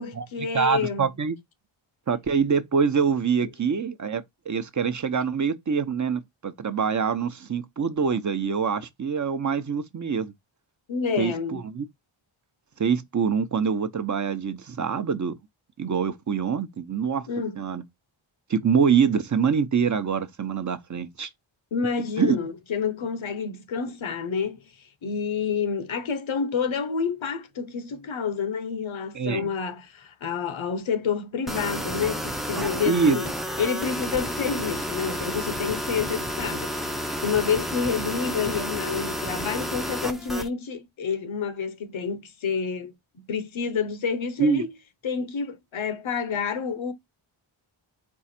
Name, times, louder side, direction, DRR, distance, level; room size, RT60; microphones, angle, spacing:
voice 1, 0.0-1.1 10.9-11.6 17.3-17.6 21.7-33.3 33.6-36.7 37.2-42.9 43.3-44.7 45.0-46.9, left 6 dB, 70° left, 1.0 m, -29 dB
voice 2, 0.5-1.4 2.1-10.3 11.2-11.8 12.8-15.3 15.8-17.3 17.6-17.8 18.5-21.3 22.2-22.4 29.1-29.5 32.9-33.2 44.4-44.6, right 6 dB, 35° right, 0.7 m, -25 dB
sound 1, 31.5-40.5, equal, ahead, 0.5 m, -31 dB
4.7 x 2.4 x 4.3 m
wide cardioid pair, 90°, 50 cm